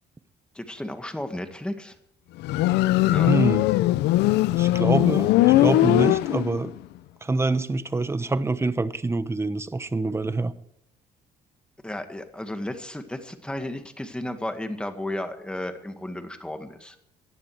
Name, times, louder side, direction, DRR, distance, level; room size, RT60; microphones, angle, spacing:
voice 1, 0.5-2.0 3.0-3.4 11.8-17.0, left 1 dB, 5° left, 7 dB, 1.9 m, -33 dB
Motorcycle, 2.4-6.8, left 16 dB, 85° left, 0.7 m, -20 dB
voice 2, 3.3-3.6 4.6-6.7 7.2-10.5, right 3 dB, 15° right, 13 dB, 1.0 m, -25 dB
18.0 x 11.5 x 4.8 m, 0.75 s
cardioid pair, 110°, 17 cm